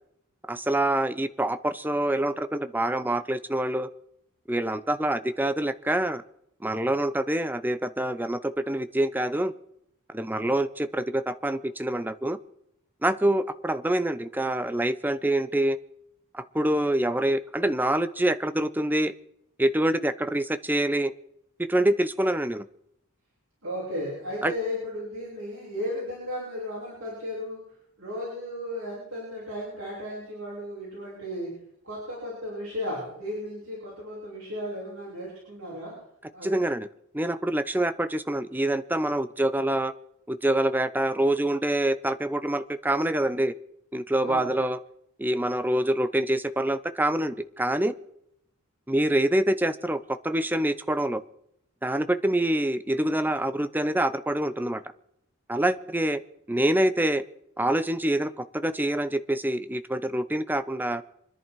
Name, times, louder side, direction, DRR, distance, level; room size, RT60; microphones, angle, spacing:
voice 1, 0.5-3.9 4.5-6.2 6.6-9.5 10.1-12.4 13.0-15.8 16.3-19.1 19.6-21.1 21.6-22.7 24.4-24.5 36.4-36.9 37.1-39.9 40.3-43.5 43.9-44.8 45.2-47.9 48.9-51.2 51.8-54.8 55.5-56.2 56.5-57.2 57.6-61.0, right 1 dB, 10° right, 11 dB, 0.6 m, -26 dB
voice 2, 23.6-27.6 28.0-31.5 31.8-35.9 36.3-36.6 44.2-44.5, left 1 dB, 65° right, -6 dB, 7.3 m, -35 dB
27.0 x 10.5 x 4.7 m, 0.77 s
head